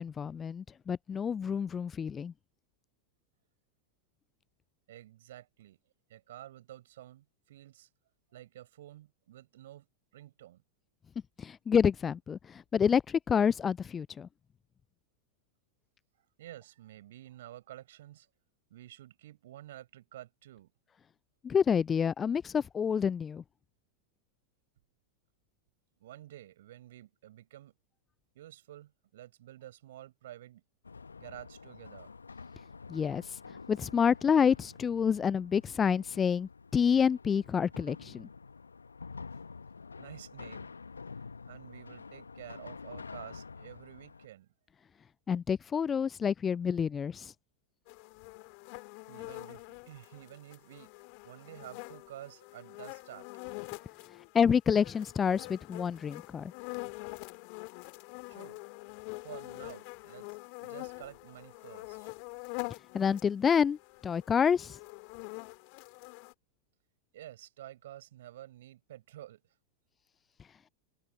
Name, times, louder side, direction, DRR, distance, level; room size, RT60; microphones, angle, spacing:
voice 1, 0.0-2.3 11.4-14.3 21.4-23.4 32.9-33.2 33.7-38.3 45.3-47.3 54.3-56.5 62.9-63.8 64.0-64.8, left 7 dB, 20° left, 0.4 m, -28 dB
voice 2, 4.9-5.8 6.1-7.9 8.3-9.9 10.1-10.6 16.4-18.3 18.7-20.7 26.0-27.8 28.3-30.6 31.2-32.1 40.0-40.7 41.5-44.5 49.1-50.9 51.2-53.3 58.3-58.6 59.2-60.3 60.6-62.1 67.1-69.4, right 13 dB, 55° right, 7.6 m, -50 dB
sound 1, 30.8-44.3, left 4 dB, 75° left, 1.4 m, -48 dB
sound 2, 47.9-54.4 54.7-63.3 63.7-66.3, left 40 dB or more, 45° left, 2.2 m, -45 dB
figure-of-eight pair, 90°, 0 cm